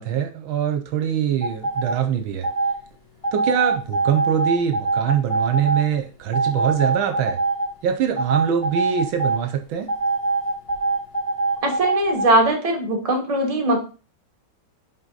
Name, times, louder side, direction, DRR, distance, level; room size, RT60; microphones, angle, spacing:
voice 1, 0.0-2.5 3.3-7.4 7.8-9.9, right 8 dB, 75° right, 6 dB, 1.5 m, -23 dB
morse code, 1.4-1.9 2.4-2.7 3.2-5.8 6.3-7.7 8.2-9.4 9.9-12.3, right 3 dB, 15° left, 1.7 m, -23 dB
voice 2, 11.6-13.8, right 1 dB, 20° right, 2 dB, 1.4 m, -20 dB
5.6 x 5.5 x 3.9 m, 0.36 s
omnidirectional pair, 2.2 m